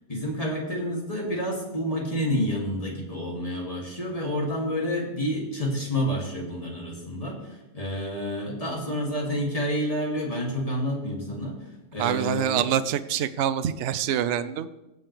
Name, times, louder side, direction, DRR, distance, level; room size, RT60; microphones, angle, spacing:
voice 1, 0.1-11.6 11.9-12.7, equal, 30° left, -2 dB, 2.6 m, -29 dB
voice 2, 12.0-14.7, right 9 dB, 70° right, 12 dB, 0.9 m, -25 dB
19.0 x 7.7 x 3.4 m, 0.97 s
omnidirectional pair, 1.3 m